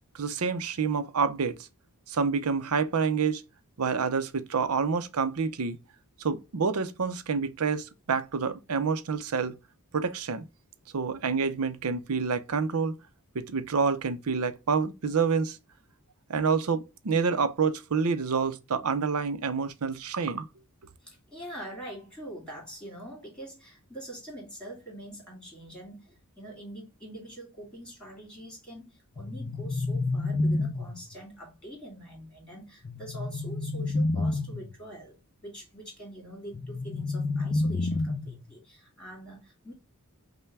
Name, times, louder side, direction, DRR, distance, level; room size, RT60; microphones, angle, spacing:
voice 1, 0.1-1.6 2.1-3.4 3.8-5.8 6.2-9.6 9.9-10.5 10.9-13.0 13.3-15.6 16.3-20.5, right 5 dB, 80° right, 0.6 m, -28 dB
voice 2, 21.0-39.7, right 1 dB, 5° left, 2.1 m, -44 dB
sound 1, 29.2-31.2 32.8-34.7 36.5-38.5, left 2 dB, 40° left, 0.5 m, -29 dB
5.5 x 2.2 x 3.3 m
head